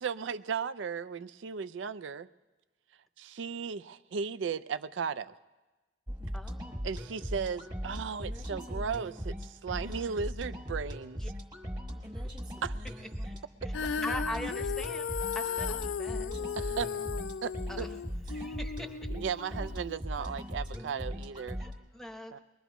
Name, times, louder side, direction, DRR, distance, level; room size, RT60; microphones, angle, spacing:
voice 1, 0.0-2.3 3.2-5.4 6.8-11.2 12.6-12.9 16.5-16.9 17.4-17.9 18.4-18.5 19.1-21.6 22.3-22.4, right 6 dB, 70° right, 14 dB, 0.4 m, -36 dB
sound 1, 6.1-21.7, equal, 25° right, 1.7 m, -39 dB
voice 2, 6.3-6.9 9.7-10.1 11.2-11.3 11.9-12.3 13.2-13.4 13.6-13.7 14.0-15.1 15.3-16.3 17.7-17.9 18.3-18.9 21.6-22.4, equal, ahead, 5 dB, 0.9 m, -42 dB
Female singing, 13.7-20.0, left 7 dB, 85° left, 0.4 m, -36 dB
23.0 x 21.0 x 3.0 m, 1.2 s
head